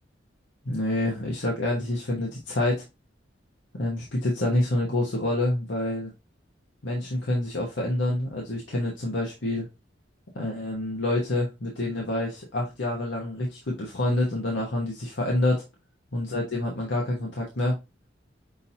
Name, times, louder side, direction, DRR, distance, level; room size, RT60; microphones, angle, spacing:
voice 1, 0.6-2.8 3.8-6.1 6.8-9.7 10.3-15.6 16.1-17.8, left 1 dB, 70° left, -1 dB, 1.1 m, -27 dB
6.1 x 2.8 x 2.7 m, 0.24 s
head